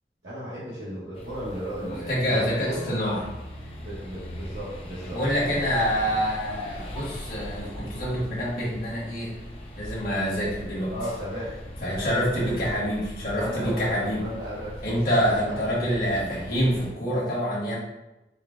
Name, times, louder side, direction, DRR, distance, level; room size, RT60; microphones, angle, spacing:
voice 1, 0.2-2.9 3.8-5.6 10.9-12.6 13.3-15.9 16.2-16.5, equal, 85° right, -11 dB, 1.2 m, -36 dB
sound 1, 1.1-16.9, equal, 30° left, 0.6 m, -40 dB
voice 2, 1.8-3.2 5.1-9.3 9.8-10.9 11.8-14.2 14.8-17.7, equal, 50° left, -7 dB, 1.3 m, -26 dB
4.6 x 2.2 x 3.7 m, 0.98 s
head